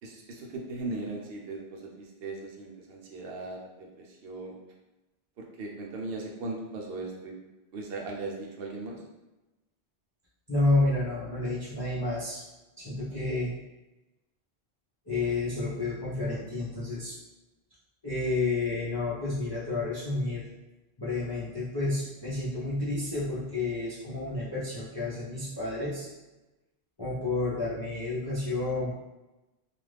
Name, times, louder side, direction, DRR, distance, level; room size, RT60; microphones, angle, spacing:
voice 1, 0.0-4.6 5.4-7.4 7.7-9.0, right 2 dB, 70° right, -1 dB, 0.8 m, -38 dB
voice 2, 10.5-12.4 12.8-13.5 15.1-17.1 18.0-20.5 21.0-26.1 27.0-28.9, left 2 dB, 25° left, -10 dB, 0.6 m, -30 dB
2.5 x 2.4 x 3.3 m, 1.0 s
omnidirectional pair, 1.1 m